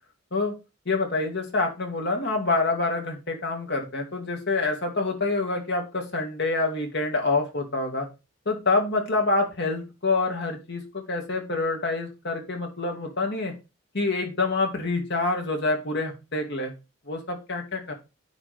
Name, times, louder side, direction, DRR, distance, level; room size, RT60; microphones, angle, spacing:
voice 1, 0.9-8.1 8.5-13.5 13.9-16.7 17.1-17.9, left 3 dB, 60° left, 3 dB, 2.0 m, -26 dB
10.0 x 3.7 x 4.9 m, 0.27 s
head